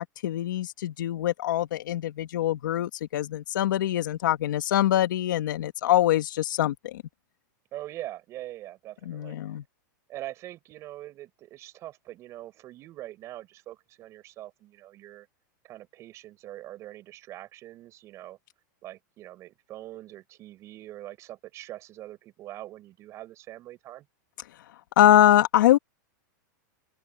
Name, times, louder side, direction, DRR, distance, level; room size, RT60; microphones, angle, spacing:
voice 1, 0.0-7.0 9.0-9.6 25.0-25.8, left 12 dB, 75° left, 2.0 m, -23 dB
voice 2, 7.7-9.4 10.1-15.3 15.6-18.4 18.8-24.0, right 14 dB, 25° right, 7.4 m, -43 dB
open air
supercardioid pair, 165°, 11 cm